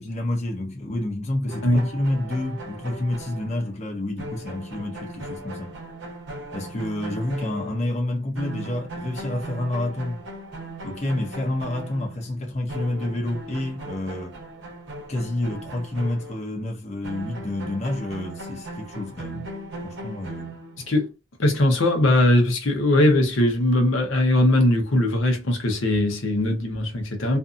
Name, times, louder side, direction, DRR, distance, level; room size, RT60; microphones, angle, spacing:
voice 1, 0.0-5.8 6.5-10.2 10.8-14.4 15.1-19.5 19.8-20.6, left 1 dB, 35° left, 0.6 m, -29 dB
sound 1, 1.5-8.1 8.4-16.6 17.0-21.0, right 1 dB, 65° right, 0.8 m, -38 dB
voice 2, 21.4-27.4, left 1 dB, 80° left, 0.8 m, -20 dB
2.6 x 2.5 x 2.4 m
head